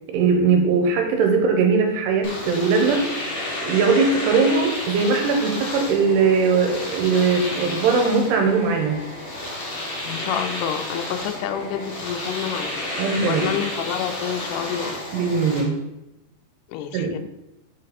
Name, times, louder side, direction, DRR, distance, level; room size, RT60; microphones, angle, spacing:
voice 1, 0.1-3.1 3.6-9.0 13.0-13.5 15.1-15.7 16.9-17.2, right 5 dB, 80° right, 3 dB, 3.0 m, -20 dB
Domestic sounds home sounds, 2.2-15.6, left 1 dB, 55° left, 1.3 m, -31 dB
voice 2, 10.1-12.7 13.3-14.9 16.7-17.2, left 9 dB, 85° left, 6 dB, 2.6 m, -28 dB
6.5 x 4.1 x 4.1 m, 0.90 s
omnidirectional pair, 4.8 m